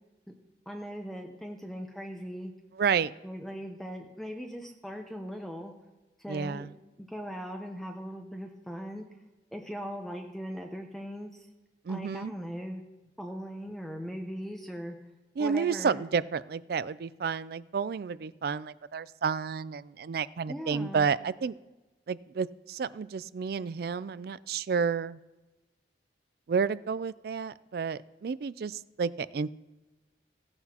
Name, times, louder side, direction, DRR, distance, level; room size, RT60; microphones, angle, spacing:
voice 1, 0.7-2.5 3.2-5.7 6.2-6.7 7.0-9.0 9.5-11.5 11.9-12.8 13.2-15.0 15.4-16.0 20.5-21.1, equal, ahead, 2 dB, 0.7 m, -39 dB
voice 2, 2.7-3.1 6.3-6.7 11.9-12.3 15.4-21.6 22.1-25.2 26.5-29.5, right 6 dB, 60° right, 17 dB, 0.3 m, -31 dB
16.0 x 9.7 x 2.9 m, 1.1 s
head